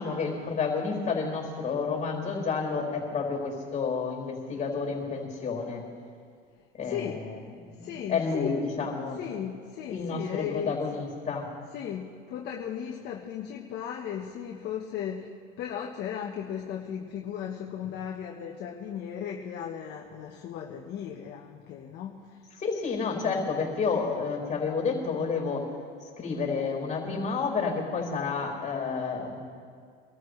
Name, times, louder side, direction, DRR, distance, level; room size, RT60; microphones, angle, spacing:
voice 1, 0.0-5.8 6.8-7.4 7.7-9.2 9.9-11.5 22.6-25.7 26.0-29.4, left 5 dB, 35° left, 0 dB, 4.6 m, -30 dB
voice 2, 6.8-7.2 7.8-10.8 11.7-22.4, left 8 dB, 55° left, 0 dB, 1.2 m, -36 dB
24.5 x 13.5 x 3.2 m, 2.1 s
supercardioid pair, 115°, 21 cm